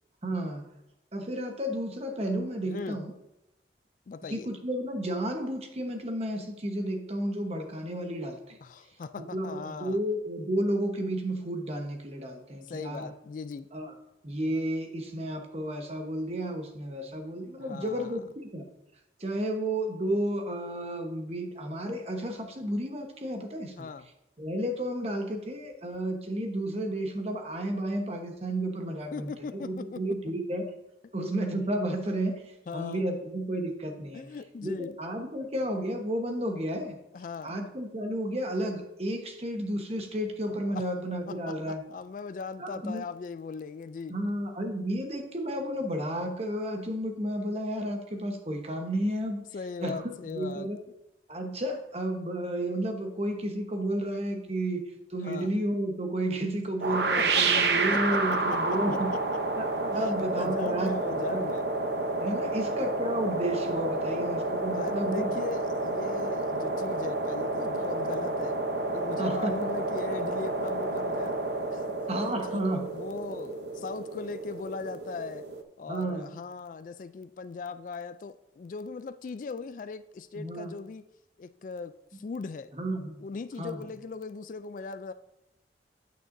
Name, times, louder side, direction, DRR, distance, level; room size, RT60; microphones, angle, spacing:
voice 1, 0.2-0.6 1.1-3.1 4.3-8.6 9.2-13.1 13.7-13.9 14.2-18.6 19.2-23.9 24.4-30.7 31.1-34.2 34.6-37.0 37.4-41.8 42.6-43.0 44.1-49.4 49.8-50.8 51.3-54.8 55.1-59.1 59.5-61.0 61.3-61.5 62.2-65.3 66.6-66.7 69.2-69.7 72.1-72.9 75.9-76.3 80.4-80.8 82.7-83.2 83.6-83.8, right 1 dB, 35° right, 4 dB, 1.1 m, -32 dB
voice 2, 2.7-3.0 4.1-4.5 8.6-10.0 12.6-13.7 17.6-18.2 23.8-24.1 29.1-30.0 32.7-33.1 34.1-35.0 37.1-37.6 40.7-40.8 41.3-44.2 49.5-50.7 55.2-55.5 57.2-57.6 57.9-58.0 58.3-59.2 59.9-61.7 62.4-62.9 64.7-68.6 68.9-71.4 71.7-71.9 72.4-72.6 72.9-75.5 75.8-81.0 81.4-82.7 83.2-85.1, left 4 dB, 45° left, 13 dB, 0.3 m, -39 dB
sound 1, 56.8-75.6, right 3 dB, 70° right, 0.8 m, -30 dB
9.1 x 8.8 x 2.6 m, 0.90 s
head